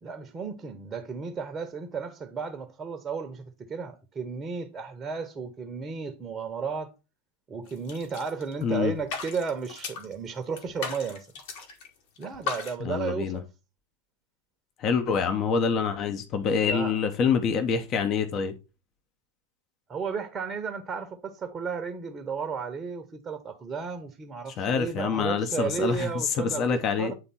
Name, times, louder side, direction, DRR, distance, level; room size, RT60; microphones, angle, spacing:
voice 1, 0.0-6.9 7.5-11.3 12.2-13.4 16.6-17.0 19.9-27.1, right 5 dB, 20° right, 1.1 m, -34 dB
sound 1, 7.7-8.7 9.0-10.1 10.6-11.9 12.2-12.7, left 5 dB, 50° left, 1.9 m, -36 dB
voice 2, 8.6-8.9 12.8-13.4 14.8-18.5 24.6-26.1 26.4-27.1, left 6 dB, 35° left, 1.0 m, -26 dB
9.5 x 3.5 x 4.3 m
figure-of-eight pair, 90°, 0 cm